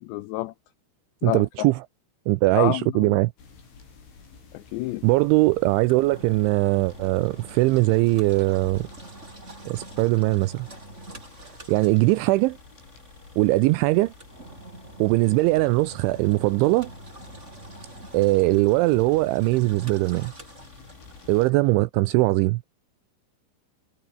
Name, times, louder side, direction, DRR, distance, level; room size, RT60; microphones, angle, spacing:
voice 1, 0.0-0.5 1.2-1.7 2.5-3.2 4.5-5.1, left 17 dB, 90° left, 2.4 m, -29 dB
voice 2, 1.2-1.8 2.3-3.3 5.0-8.9 9.7-10.7 11.7-12.6 13.4-14.1 15.0-16.9 18.1-20.3 21.3-22.6, right 20 dB, 85° right, 2.8 m, -21 dB
sound 1, 3.4-21.5, left 4 dB, 65° left, 10.5 m, -50 dB
Engine, 5.3-21.4, right 2 dB, 15° right, 5.7 m, -45 dB
omnidirectional pair, 6.0 m